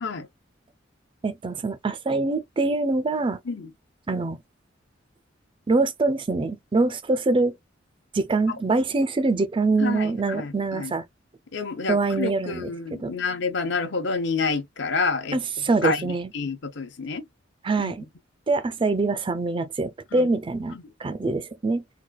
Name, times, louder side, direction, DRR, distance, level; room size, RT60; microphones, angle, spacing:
voice 1, 1.2-3.4 4.1-4.4 5.7-7.5 8.1-11.0 11.9-13.1 15.3-16.3 17.6-18.0 18.5-21.8, right 3 dB, 25° right, 0.4 m, -24 dB
voice 2, 9.8-10.9 11.5-17.2 17.8-17.9 20.1-20.3 20.7-20.8, left 4 dB, 65° left, 0.9 m, -29 dB
3.9 x 2.3 x 2.3 m
head